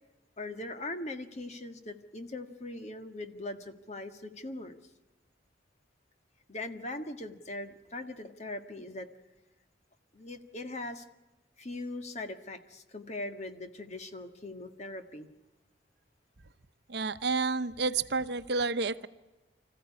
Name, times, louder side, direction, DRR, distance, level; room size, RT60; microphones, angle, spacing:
voice 1, 0.4-4.8 6.5-9.1 10.1-11.0 11.6-15.3, left 2 dB, 40° left, 7 dB, 1.6 m, -40 dB
voice 2, 16.9-19.1, right 4 dB, 70° right, 12 dB, 0.9 m, -30 dB
26.0 x 15.0 x 9.8 m, 1.1 s
head